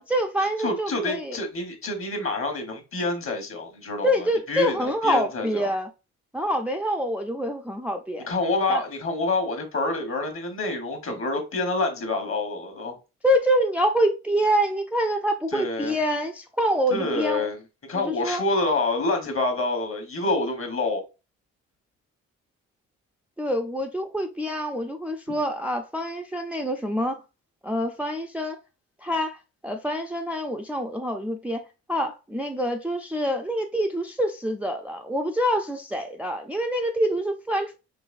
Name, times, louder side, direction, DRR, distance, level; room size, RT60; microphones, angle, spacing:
voice 1, 0.0-1.4 4.0-5.9 6.3-8.3 8.7-8.8 13.2-17.5 17.9-18.4 23.4-27.2 27.6-28.6 29.0-31.6 31.9-37.8, equal, 5° right, 0.4 m, -26 dB
voice 2, 0.6-5.7 8.3-13.0 15.5-16.0 16.9-17.6 17.9-21.0, left 2 dB, 45° left, 1.3 m, -27 dB
4.0 x 3.0 x 2.4 m
cardioid pair, 90°, 30 cm